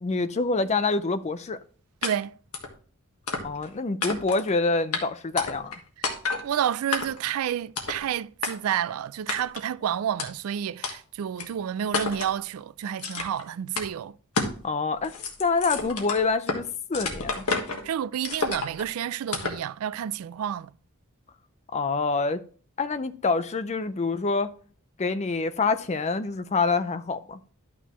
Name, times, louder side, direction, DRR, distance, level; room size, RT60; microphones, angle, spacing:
voice 1, 0.0-1.6 3.4-5.8 14.6-15.1 15.4-17.4 21.7-22.4 22.8-24.5 25.0-27.4, left 4 dB, 30° left, 0.5 m, -26 dB
sound 1, 2.0-2.1 2.5-2.7 3.3-3.7 4.0-4.5 4.9-5.0 5.4-5.8 6.0-6.4 6.9-7.3 7.8-8.0 8.4-8.5 9.3-9.7 10.2-10.3 10.8-10.9 11.4-11.5 11.9-12.3 13.0-13.4 13.8-13.9 14.4-14.6 14.9-16.6 16.9-17.8 18.2-18.8 19.3-19.6, left 4 dB, 80° left, 1.4 m, -30 dB
voice 2, 2.0-2.3 6.4-14.1 17.8-20.7, right 9 dB, 70° right, 0.3 m, -30 dB
11.0 x 6.1 x 3.0 m
head